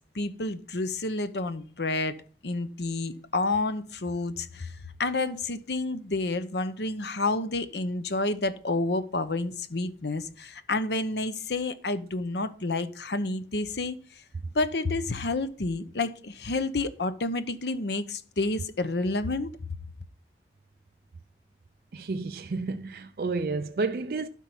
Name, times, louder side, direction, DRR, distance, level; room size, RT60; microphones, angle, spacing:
voice 1, 0.1-2.2 2.4-14.0 14.5-19.5, left 2 dB, 75° left, 0.9 m, -29 dB
voice 2, 21.9-24.3, right 3 dB, 55° right, 0.4 m, -31 dB
12.0 x 4.6 x 5.4 m
head